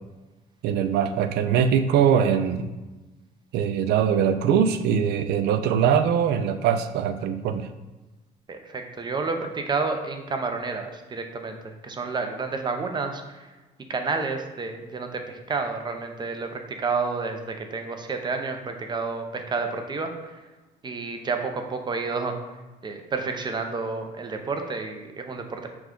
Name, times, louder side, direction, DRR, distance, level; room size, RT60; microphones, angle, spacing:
voice 1, 0.6-2.7 3.5-7.7, right 8 dB, 75° right, 10 dB, 0.4 m, -22 dB
voice 2, 8.5-13.5 13.9-20.4 20.8-22.3 22.8-25.7, right 4 dB, 25° right, 5 dB, 0.6 m, -30 dB
5.9 x 2.3 x 3.7 m, 1.1 s
cardioid pair, 110°, 17 cm